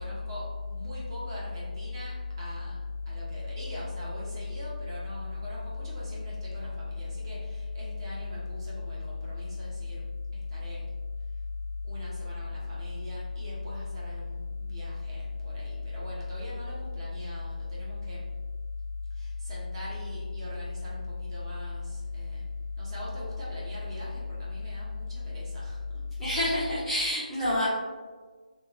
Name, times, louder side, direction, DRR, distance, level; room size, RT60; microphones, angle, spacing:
voice 1, 0.0-2.8 3.1-10.0 10.3-10.8 11.8-18.2 19.1-22.4 22.8-26.0, left 3 dB, 35° right, -6 dB, 0.9 m, -36 dB
voice 2, 26.2-27.7, equal, ahead, -15 dB, 0.6 m, -28 dB
2.9 x 2.4 x 2.9 m, 1.4 s
figure-of-eight pair, 155°, 5 cm